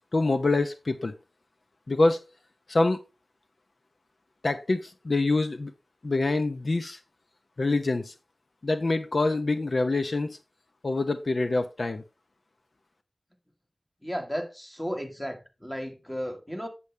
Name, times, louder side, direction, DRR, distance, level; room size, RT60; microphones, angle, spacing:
voice 1, 0.1-1.1 1.9-2.2 2.7-3.0 4.4-5.7 6.0-7.0 7.6-8.1 8.6-10.4 10.8-12.0, left 2 dB, 65° left, 0.7 m, -25 dB
voice 2, 14.0-16.7, equal, 10° left, 1.7 m, -34 dB
8.3 x 7.1 x 3.3 m
wide cardioid pair, 70°, 0 cm